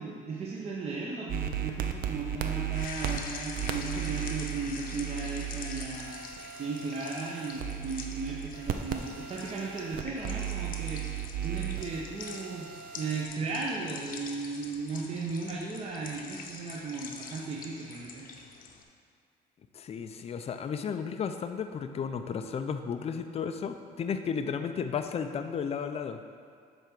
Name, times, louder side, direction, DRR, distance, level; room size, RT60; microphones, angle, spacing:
voice 1, 0.0-6.2 6.6-12.7 13.0-18.3, right 4 dB, 35° right, -4 dB, 0.9 m, -36 dB
sound 1, 1.3-13.2, right 10 dB, 60° right, 0.5 m, -36 dB
sound 2, 2.7-18.8, left 5 dB, 60° left, 0.9 m, -45 dB
voice 2, 19.7-26.2, left 6 dB, 35° left, 8 dB, 0.5 m, -33 dB
8.2 x 3.5 x 6.0 m, 2.3 s
cardioid pair, 110°, 17 cm